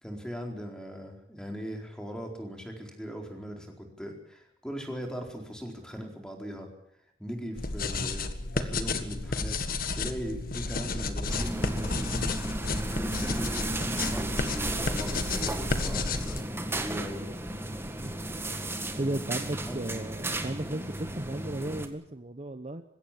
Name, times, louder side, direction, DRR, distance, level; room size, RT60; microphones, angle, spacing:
voice 1, 0.0-6.7 7.2-9.6 9.9-11.9 12.7-16.4 16.7-17.2 19.6-19.8, equal, 5° left, 2 dB, 4.3 m, -39 dB
sound 1, 7.6-16.4, left 3 dB, 50° left, 1.7 m, -32 dB
sound 2, 11.3-21.9, right 1 dB, 15° right, 1.9 m, -34 dB
voice 2, 19.0-22.8, right 1 dB, 35° right, 9 dB, 0.9 m, -35 dB
21.0 x 16.5 x 8.6 m, 0.72 s
head